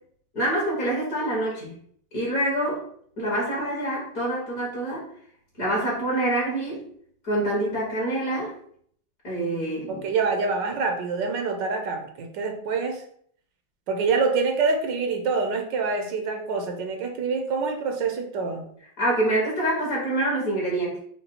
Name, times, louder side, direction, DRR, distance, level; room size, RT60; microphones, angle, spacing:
voice 1, 0.3-1.7 2.1-2.8 3.2-5.0 5.6-6.8 7.2-8.5 9.2-10.0 19.0-21.0, right 1 dB, 50° left, -4 dB, 1.9 m, -26 dB
voice 2, 9.9-13.0 13.9-18.6, right 4 dB, 70° right, 4 dB, 1.3 m, -26 dB
5.2 x 2.3 x 4.2 m, 0.63 s
omnidirectional pair, 2.1 m